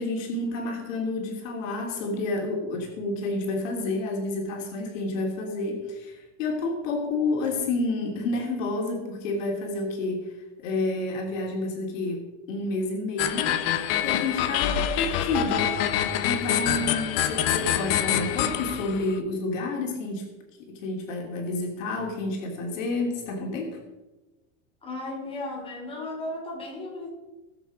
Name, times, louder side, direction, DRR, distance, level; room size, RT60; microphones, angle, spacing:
voice 1, 0.0-10.3 10.6-15.7 16.2-20.3 20.6-23.8, left 2 dB, 65° left, 0 dB, 3.1 m, -30 dB
sound 1, 13.2-19.2, left 10 dB, 45° left, 1.0 m, -26 dB
voice 2, 24.8-27.1, left 2 dB, 15° left, -2 dB, 3.2 m, -35 dB
19.0 x 7.3 x 5.1 m, 1.1 s
supercardioid pair, 165°, 41 cm